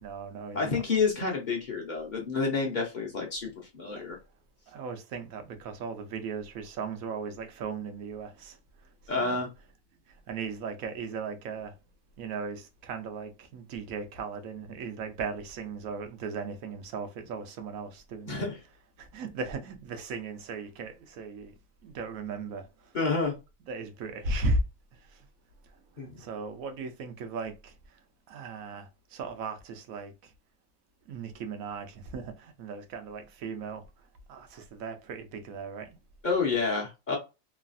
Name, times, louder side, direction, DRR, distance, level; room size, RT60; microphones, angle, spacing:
voice 1, 0.0-0.8 3.9-4.1 4.7-9.4 10.1-11.8 12.2-18.4 19.0-23.0 23.7-24.6 24.9-25.3 25.6-30.3 31.1-36.0, right 3 dB, 90° right, 1.1 m, -37 dB
voice 2, 0.5-4.2 9.1-9.5 18.3-18.6 22.9-23.3 26.0-26.2 36.2-37.2, left 4 dB, 40° left, 0.8 m, -29 dB
3.1 x 2.3 x 2.5 m
omnidirectional pair, 1.4 m